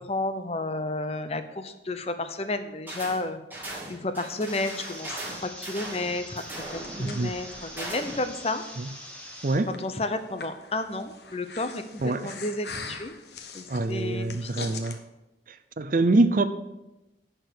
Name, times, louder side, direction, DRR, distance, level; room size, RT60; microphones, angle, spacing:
voice 1, 0.0-3.4 3.9-5.1 5.4-6.4 6.7-8.6 9.8-13.1 13.5-14.8, left 2 dB, 35° left, 10 dB, 0.7 m, -32 dB
sound 1, 2.9-3.2 3.5-8.3, right 1 dB, 10° right, 2.3 m, -39 dB
sound 2, 4.5-9.5, equal, 5° left, 1.4 m, -43 dB
Breathing, 6.5-15.0, left 4 dB, 70° left, 1.1 m, -43 dB
voice 2, 7.0-7.3 8.8-8.9 9.4-9.7 12.0-12.4 13.7-15.0 15.5-16.5, right 2 dB, 50° right, 11 dB, 0.5 m, -25 dB
11.0 x 4.5 x 8.1 m, 0.98 s
head